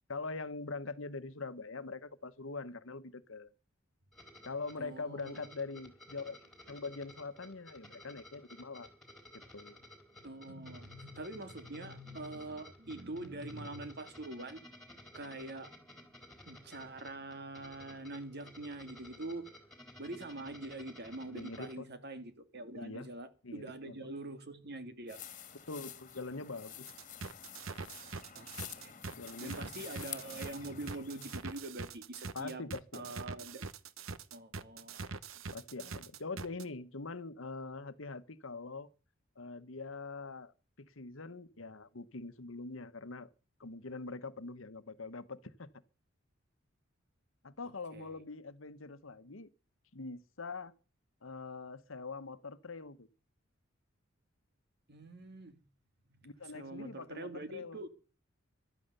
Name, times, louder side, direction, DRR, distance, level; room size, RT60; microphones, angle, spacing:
voice 1, 0.1-3.5 4.4-8.9 9.5-9.8 21.3-21.9 22.7-23.1 23.4-23.9 25.5-26.9 29.1-29.7 32.3-33.2 35.5-38.9 39.4-43.3 43.6-45.7 47.4-49.5 49.9-50.7 51.2-53.1 56.2-57.8, left 3 dB, 75° left, 1.2 m, -43 dB
sound 1, 4.1-21.7, left 1 dB, ahead, 4.2 m, -55 dB
voice 2, 4.8-5.5 10.2-14.6 15.1-15.7 16.5-19.5 20.0-25.2 28.3-32.6 32.9-33.7 34.3-35.1 47.6-48.2 54.9-55.6 56.1-57.9, right 2 dB, 55° right, 2.2 m, -44 dB
sound 2, 25.1-31.6, left 9 dB, 40° left, 1.9 m, -49 dB
sound 3, 26.9-36.6, right 4 dB, 85° right, 1.0 m, -43 dB
14.5 x 12.5 x 6.7 m
head